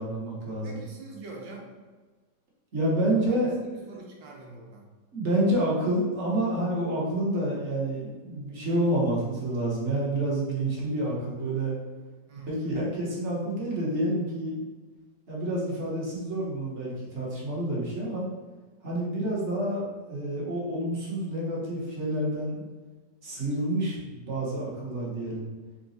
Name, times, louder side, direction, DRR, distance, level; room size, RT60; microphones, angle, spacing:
voice 1, 0.0-0.8 2.7-3.8 5.1-11.7 12.5-14.6 15.3-18.3 18.8-22.6 23.2-25.5, right 1 dB, 45° right, -6 dB, 1.2 m, -28 dB
voice 2, 0.6-1.7 3.2-3.4 3.9-4.8 12.3-12.8, right 2 dB, 80° right, -1 dB, 1.5 m, -44 dB
3.9 x 2.3 x 3.9 m, 1.3 s
omnidirectional pair, 1.9 m